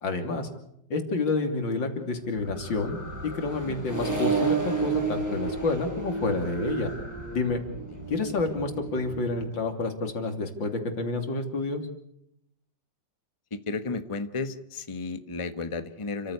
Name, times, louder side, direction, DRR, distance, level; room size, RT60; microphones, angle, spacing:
voice 1, 0.0-0.5 0.9-3.0 3.2-6.9 7.3-7.6 8.1-11.8, left 3 dB, 90° left, 6 dB, 3.7 m, -29 dB
sound 1, 2.3-9.5, equal, 35° right, 6.3 m, -43 dB
Accelerating revving vroom, 2.5-9.1, right 4 dB, 10° right, 5.7 m, -31 dB
voice 2, 13.5-16.3, left 3 dB, 20° left, 11 dB, 1.1 m, -33 dB
30.0 x 14.5 x 8.3 m, 0.76 s
omnidirectional pair, 2.0 m